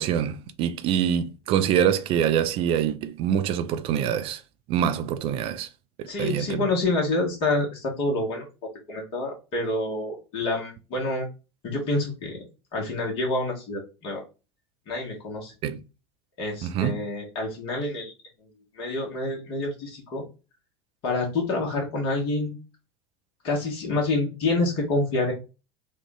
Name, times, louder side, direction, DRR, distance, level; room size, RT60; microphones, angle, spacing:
voice 1, 0.0-4.4 4.7-5.7 6.0-6.6 15.6-15.8 16.6-17.0, right 9 dB, 40° right, 0.4 m, -25 dB
voice 2, 6.1-8.4 8.9-11.3 11.6-12.4 12.7-14.2 14.9-15.5 16.4-18.1 18.7-20.2 21.0-22.5 23.4-25.3, left 2 dB, 45° left, 1.3 m, -27 dB
3.1 x 2.3 x 3.8 m
figure-of-eight pair, 75°, 15 cm